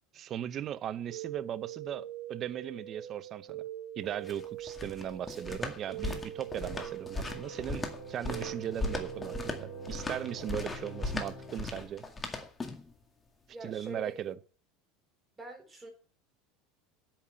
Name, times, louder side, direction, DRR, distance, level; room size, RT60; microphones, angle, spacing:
voice 1, 0.1-3.6 4.0-12.0 13.6-14.3, right 10 dB, 35° right, 0.7 m, -38 dB
sound 1, 1.1-10.7, right 11 dB, 80° right, 2.9 m, -43 dB
sound 2, 4.0-12.9, left 3 dB, 15° left, 2.0 m, -38 dB
sound 3, 5.1-11.9, left 1 dB, 45° left, 4.2 m, -49 dB
voice 2, 13.5-14.2 15.4-15.9, right 2 dB, 10° right, 3.9 m, -44 dB
9.2 x 8.9 x 8.7 m
supercardioid pair, 150°, 0 cm